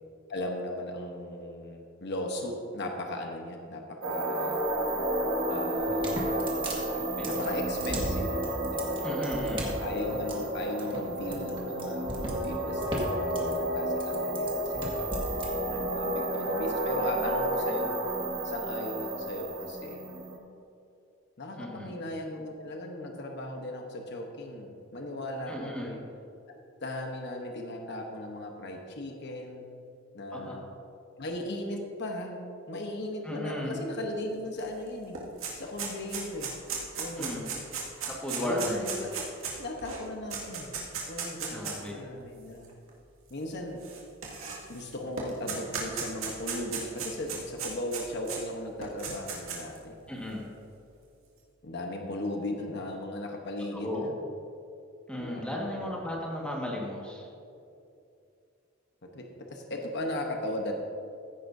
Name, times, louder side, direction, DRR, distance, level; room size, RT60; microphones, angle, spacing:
voice 1, 0.3-4.6 5.5-6.6 7.2-8.4 8.7-9.0 9.4-15.0 15.6-18.0 18.4-20.0 21.4-26.0 26.5-29.7 30.1-30.7 31.2-32.4 32.7-35.2 35.5-36.5 37.0-37.5 38.4-39.2 39.6-40.7 41.1-42.7 43.3-43.8 44.7-50.0 51.6-54.1 55.2-55.9 59.0-60.7, left 1 dB, 55° left, 2 dB, 1.0 m, -37 dB
sound 1, 4.0-20.4, right 1 dB, 60° right, 1.5 m, -31 dB
sound 2, 5.7-15.5, right 1 dB, 25° right, 1.8 m, -37 dB
voice 2, 6.9-7.3 9.0-9.7 21.6-21.9 25.5-25.9 30.3-30.6 33.2-33.8 37.2-37.5 38.1-38.8 41.5-42.0 50.1-50.5 53.7-54.1 55.1-57.3, left 1 dB, 5° left, -3 dB, 1.6 m, -35 dB
sound 3, 34.6-34.7 34.9-41.9 42.6-42.7 43.8-44.8 45.2-48.4 48.8-49.8, right 6 dB, 80° right, 2.1 m, -35 dB
15.5 x 10.0 x 2.7 m, 2.6 s
head